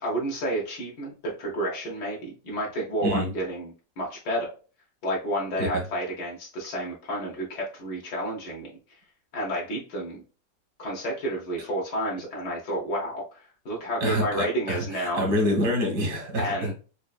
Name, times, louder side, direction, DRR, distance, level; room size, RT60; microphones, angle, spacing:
voice 1, 0.0-4.5 5.0-8.7 9.3-10.2 10.8-15.2 16.4-16.7, right 1 dB, 75° left, -2 dB, 1.6 m, -30 dB
voice 2, 14.0-16.7, equal, 85° right, 1 dB, 2.1 m, -26 dB
5.4 x 2.5 x 2.4 m, 0.35 s
omnidirectional pair, 1.7 m